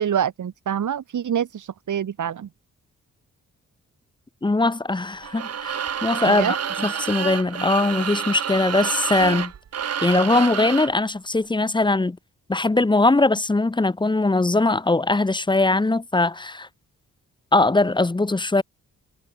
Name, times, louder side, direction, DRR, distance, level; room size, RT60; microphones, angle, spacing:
voice 1, 0.0-2.5 6.2-6.6, right 9 dB, 75° right, 6.3 m, -26 dB
voice 2, 4.4-9.5 10.0-12.2 12.5-16.7 17.5-18.6, left 2 dB, 15° left, 1.5 m, -21 dB
sound 1, 5.2-11.0, right 8 dB, 55° right, 1.8 m, -28 dB
wide cardioid pair, 170°, 31 cm